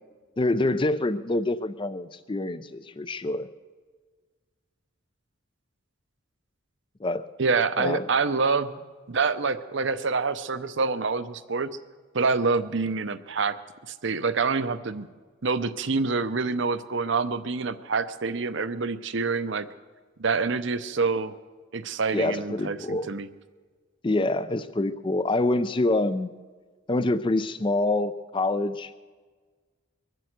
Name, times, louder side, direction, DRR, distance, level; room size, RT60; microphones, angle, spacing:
voice 1, 0.4-3.5 7.0-7.3 7.8-8.1 22.1-23.1 24.0-26.3 26.9-29.0, left 2 dB, 25° left, 13 dB, 0.4 m, -26 dB
voice 2, 7.4-8.7 9.1-11.7 12.1-13.6 13.9-15.1 15.4-19.7 20.2-21.3 21.7-23.3, right 4 dB, 60° right, 12 dB, 0.7 m, -26 dB
23.0 x 7.7 x 8.0 m, 1.5 s
head